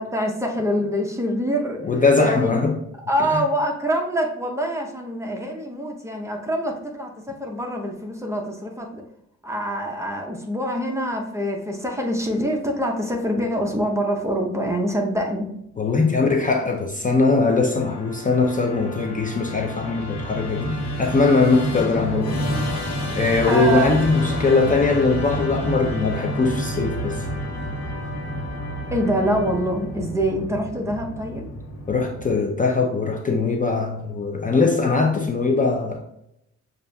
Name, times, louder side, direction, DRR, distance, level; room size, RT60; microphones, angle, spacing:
voice 1, 0.0-1.8 2.2-2.5 3.1-9.0 9.4-15.5 23.5-23.9 28.9-31.5, equal, 10° right, 1 dB, 0.7 m, -25 dB
voice 2, 1.8-2.7 15.8-22.3 23.2-27.2 31.9-36.0, left 3 dB, 30° left, 2 dB, 0.5 m, -21 dB
Musical instrument, 17.3-32.6, equal, 60° left, 1.2 m, -29 dB
6.7 x 2.5 x 2.2 m, 0.78 s
cardioid pair, 100°, 29 cm